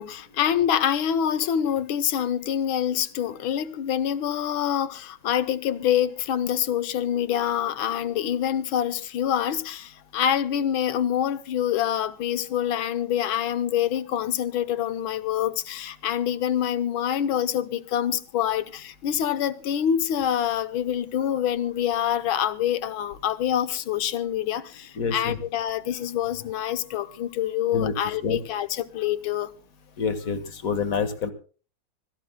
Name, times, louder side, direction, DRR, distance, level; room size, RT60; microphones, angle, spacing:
voice 1, 0.0-29.5, left 10 dB, 85° left, 1.7 m, -26 dB
voice 2, 25.0-25.4 27.7-27.9 28.2-28.4 30.0-31.3, left 5 dB, 45° left, 1.7 m, -27 dB
25.0 x 17.0 x 2.2 m
omnidirectional pair, 2.2 m